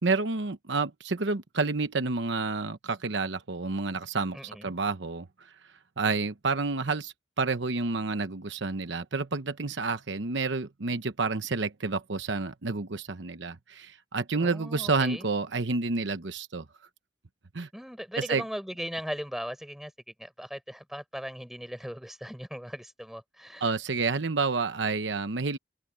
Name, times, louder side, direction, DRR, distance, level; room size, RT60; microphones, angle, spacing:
voice 1, 0.0-5.3 6.0-16.6 17.5-17.7 18.2-18.4 23.6-25.6, right 4 dB, 70° right, 1.0 m, -29 dB
voice 2, 4.3-4.7 14.4-15.3 17.7-19.9 20.2-23.7, equal, ahead, 5.5 m, -38 dB
head